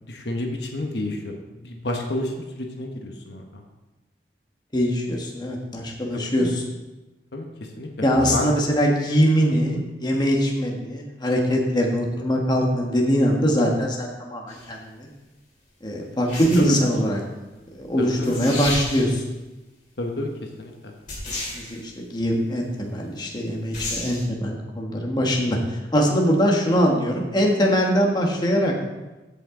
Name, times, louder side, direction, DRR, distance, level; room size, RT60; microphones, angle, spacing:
voice 1, 0.0-3.6 6.1-6.5 7.3-8.5 9.7-9.8 16.6-16.8 18.0-18.4 20.0-20.3 20.6-20.9, left 1 dB, 65° left, 2 dB, 1.1 m, -30 dB
voice 2, 4.7-6.6 8.0-15.1 15.8-17.2 17.7-19.2 21.5-28.7, equal, 25° left, -1 dB, 1.4 m, -22 dB
sound 1, 14.5-14.7 16.2-17.0 17.9-18.0 18.2-19.3 21.1-21.8 23.7-24.2, left 2 dB, 45° left, 3.6 m, -32 dB
15.0 x 5.8 x 3.8 m, 1.1 s
head